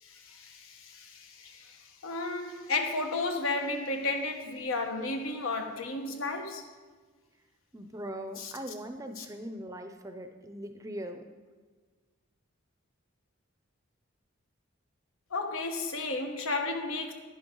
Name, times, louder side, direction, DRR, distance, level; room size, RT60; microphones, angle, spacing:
voice 1, 0.0-6.6 8.4-8.5 9.2-9.3 15.3-17.1, left 3 dB, 80° left, 1.3 m, -33 dB
voice 2, 7.7-11.2, equal, 15° right, 0.5 m, -40 dB
11.0 x 10.0 x 3.8 m
head